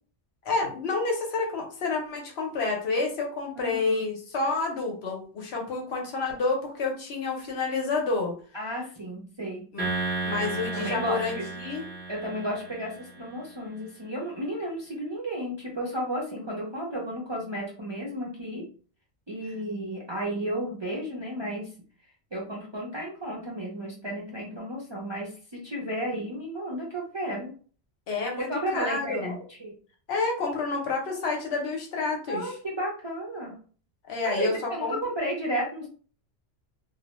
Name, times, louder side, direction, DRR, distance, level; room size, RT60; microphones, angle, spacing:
voice 1, 0.4-8.3 9.7-9.9 10.2-11.8 28.1-29.4 30.1-32.5 34.1-34.6 34.8-35.0, left 3 dB, 70° left, 1 dB, 1.0 m, -29 dB
voice 2, 3.6-4.0 8.5-9.6 10.7-11.4 12.1-12.9 13.2-18.6 19.3-21.7 22.3-25.3 25.6-27.5 28.4-29.7 32.3-33.5 34.4-35.9, equal, 35° right, -4 dB, 0.4 m, -33 dB
sound 1, 9.8-13.3, right 3 dB, 10° left, 0.5 m, -33 dB
2.3 x 2.1 x 2.9 m, 0.41 s
omnidirectional pair, 1.1 m